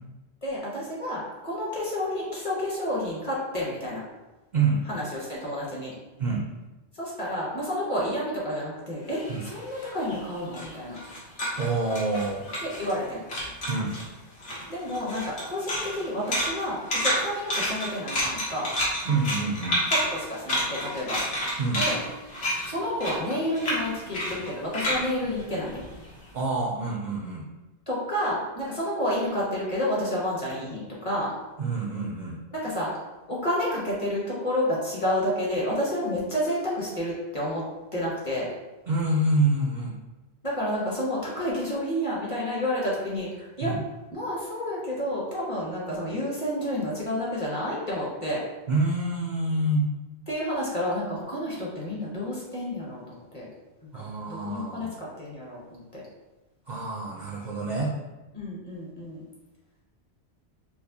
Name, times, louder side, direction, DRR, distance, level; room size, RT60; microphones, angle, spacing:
voice 1, 0.4-4.0 4.9-5.9 7.0-11.0 12.6-13.2 14.7-18.7 20.1-21.2 21.7-22.0 22.7-25.8 27.9-31.3 32.5-32.9 33.3-37.6 37.9-38.5 40.4-43.7 44.1-48.4 50.3-53.5 53.8-53.9 54.3-56.0 58.3-59.2, left 1 dB, 30° left, -6 dB, 0.9 m, -30 dB
voice 2, 4.5-4.8 6.2-6.5 9.3-9.4 11.6-12.4 13.7-14.0 19.0-19.8 21.6-21.8 26.3-27.4 31.6-32.4 38.9-39.9 43.6-43.8 48.7-49.9 53.9-54.9 56.7-57.9, right 2 dB, 55° right, -3 dB, 0.5 m, -27 dB
sound 1, 9.1-13.0 13.3-14.1 14.4-26.2, equal, 85° left, 1.3 m, -30 dB
4.6 x 2.0 x 2.7 m, 1.1 s
omnidirectional pair, 1.2 m